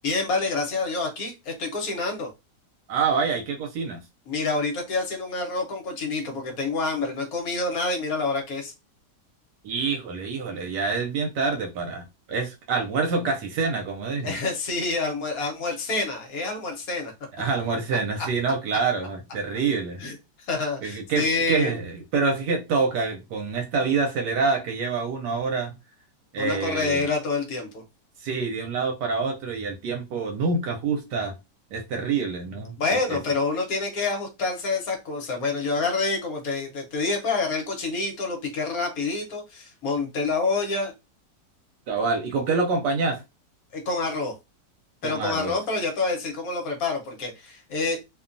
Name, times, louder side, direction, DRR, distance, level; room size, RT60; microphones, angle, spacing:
voice 1, 0.0-2.3 4.3-8.7 14.2-17.1 18.2-18.3 20.0-21.8 26.4-27.8 32.8-40.9 43.7-44.3 45.0-48.0, left 3 dB, 65° left, 1.1 m, -27 dB
voice 2, 2.9-4.0 9.6-14.4 17.4-20.0 20.8-25.7 26.3-27.0 28.2-31.3 31.7-33.2 41.9-43.2 45.0-45.6, right 4 dB, 85° right, 1.2 m, -26 dB
2.8 x 2.2 x 2.5 m
omnidirectional pair, 1.8 m